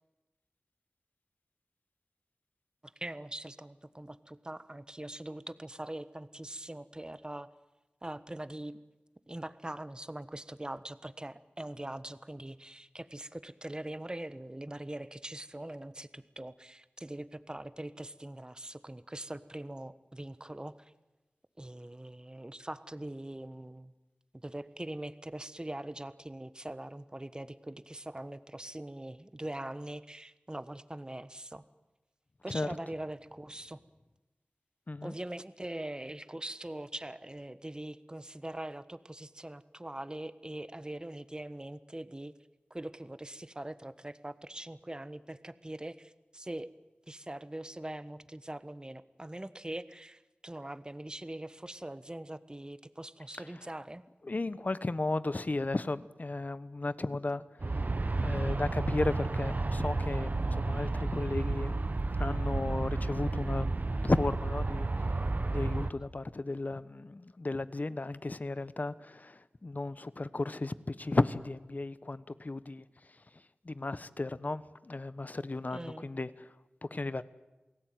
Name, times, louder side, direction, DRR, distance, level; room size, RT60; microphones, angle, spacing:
voice 1, 2.8-7.5 8.0-8.8 9.3-20.9 21.6-23.9 24.3-31.6 32.4-33.8 35.0-42.3 42.7-46.7 47.1-54.0 75.7-76.1, right 1 dB, 25° right, 1.3 m, -42 dB
voice 2, 54.2-57.9 58.1-61.8 62.2-64.9 65.5-72.8 73.6-76.5 76.8-77.2, left 2 dB, 50° left, 1.1 m, -34 dB
Aircraft, 57.6-65.9, right 2 dB, 50° right, 1.2 m, -32 dB
28.5 x 18.5 x 9.3 m
wide cardioid pair, 45°, 4 cm